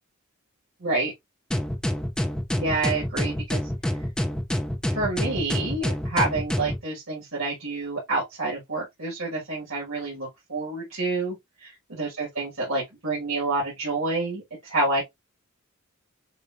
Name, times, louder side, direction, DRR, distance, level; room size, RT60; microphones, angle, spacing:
voice 1, 0.8-1.1 2.6-3.6 4.9-15.0, right 2 dB, 85° right, 2.0 m, -28 dB
sound 1, 1.5-6.8, equal, 5° left, 0.6 m, -27 dB
6.6 x 2.5 x 2.6 m
head